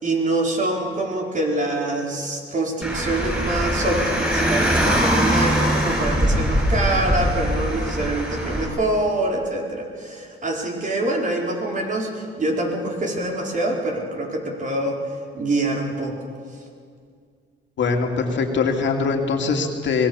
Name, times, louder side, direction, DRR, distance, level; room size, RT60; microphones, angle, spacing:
voice 1, 0.0-15.0 15.3-16.1, right 2 dB, 40° right, 0 dB, 4.5 m, -25 dB
Car, 2.8-8.7, equal, 10° right, 8.0 m, -22 dB
voice 2, 17.8-20.1, left 4 dB, 65° left, 3 dB, 2.6 m, -22 dB
24.5 x 19.0 x 7.1 m, 2.2 s
cardioid pair, 90°, 20 cm